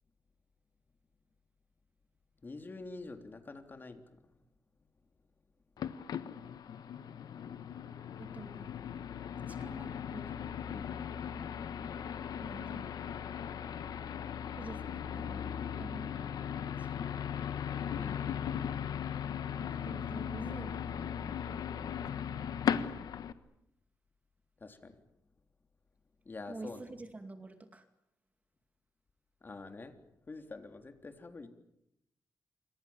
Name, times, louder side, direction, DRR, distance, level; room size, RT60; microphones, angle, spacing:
voice 1, 2.4-4.0 10.7-10.9 17.9-18.5 24.6-25.0 26.2-26.8 29.4-29.9 30.3-31.5, left 3 dB, 30° left, 6 dB, 3.5 m, -46 dB
sound 1, 5.8-23.3, left 8 dB, 85° left, 1.5 m, -38 dB
voice 2, 8.2-8.7 9.4-10.4 12.4-13.0 14.5-14.8 15.1-17.3 19.6-21.1 26.5-27.9, right 2 dB, 25° right, 8 dB, 2.4 m, -48 dB
28.5 x 26.0 x 7.4 m, 0.80 s
wide cardioid pair, 125°, 7 cm